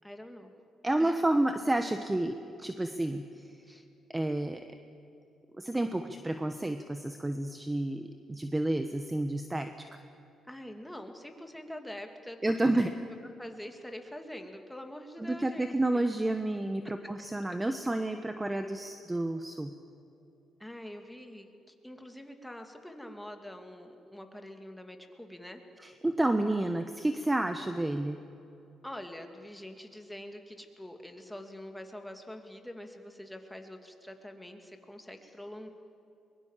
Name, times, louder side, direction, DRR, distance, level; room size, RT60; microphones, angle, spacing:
voice 1, 0.0-0.5 1.0-1.2 3.7-3.9 5.9-6.1 10.5-12.9 13.4-16.0 16.8-17.6 20.6-25.6 28.8-35.7, left 1 dB, 5° left, 5 dB, 2.6 m, -45 dB
voice 2, 0.8-3.5 4.1-4.8 5.6-10.0 12.4-12.9 15.2-19.7 25.8-28.2, right 1 dB, 15° right, 8 dB, 1.1 m, -30 dB
22.5 x 21.5 x 7.5 m, 2.7 s
cardioid pair, 90°, 0 cm